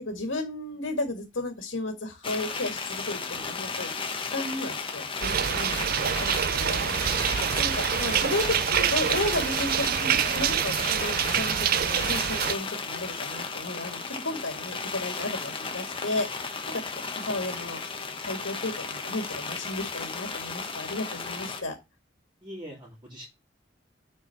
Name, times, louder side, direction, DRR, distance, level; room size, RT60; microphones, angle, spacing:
voice 1, 0.1-3.9 4.3-6.9 7.6-11.6 11.9-16.8 17.1-17.8 18.2-21.8, left 2 dB, 85° left, 4 dB, 1.7 m, -33 dB
sound 1, 2.2-21.6, left 4 dB, 30° left, 1.1 m, -34 dB
sound 2, 5.2-12.6, right 9 dB, 50° right, 0.4 m, -26 dB
voice 2, 6.5-7.7 22.4-23.3, equal, 25° right, -5 dB, 2.8 m, -44 dB
7.3 x 4.5 x 5.6 m, 0.23 s
head